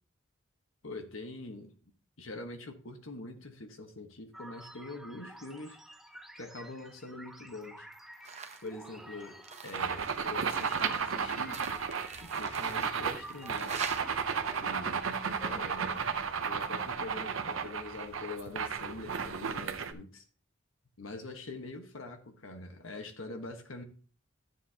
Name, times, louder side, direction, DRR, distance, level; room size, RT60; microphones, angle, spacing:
voice 1, 0.8-1.7 2.2-5.8 6.4-7.9 8.6-11.7 12.2-13.9 14.6-15.1 15.5-16.1 16.4-20.2 21.0-23.8, left 2 dB, 85° left, 1.4 m, -44 dB
sound 1, 4.3-16.6, right 1 dB, ahead, 0.6 m, -50 dB
sound 2, 8.2-8.7 9.0-14.0, right 6 dB, 35° right, 0.8 m, -44 dB
sound 3, 9.7-19.9, right 6 dB, 85° right, 0.8 m, -33 dB
12.0 x 7.2 x 2.9 m
head